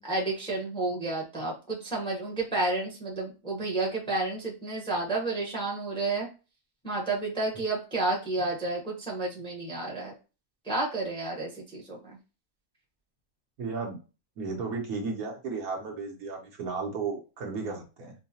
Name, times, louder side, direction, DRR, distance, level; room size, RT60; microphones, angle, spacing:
voice 1, 0.0-6.3 6.8-10.1 10.6-12.0, right 2 dB, 5° left, -2 dB, 0.8 m, -31 dB
voice 2, 13.6-14.0 14.4-18.1, right 4 dB, 70° right, 1 dB, 1.3 m, -34 dB
4.6 x 2.2 x 2.7 m, 0.31 s
omnidirectional pair, 1.6 m